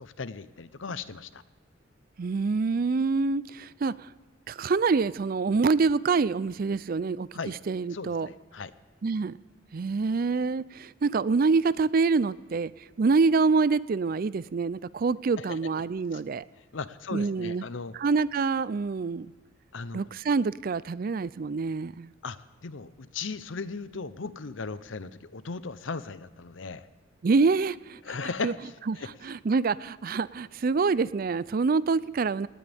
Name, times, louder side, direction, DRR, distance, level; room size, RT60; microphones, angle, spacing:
voice 1, 0.0-1.4 7.3-7.5 7.9-8.7 15.4-15.6 16.1-16.2 16.7-18.0 19.7-20.1 22.2-26.9 28.0-29.1, left 4 dB, 85° left, 15 dB, 0.7 m, -37 dB
voice 2, 2.2-4.1 4.5-8.3 9.0-9.4 9.7-12.7 13.0-16.4 17.1-17.6 17.9-19.3 19.9-22.1 27.2-28.0 28.4-28.5 28.9-29.0 29.2-32.5, right 4 dB, 50° right, 19 dB, 0.4 m, -26 dB
18.5 x 18.0 x 3.5 m, 1.3 s
head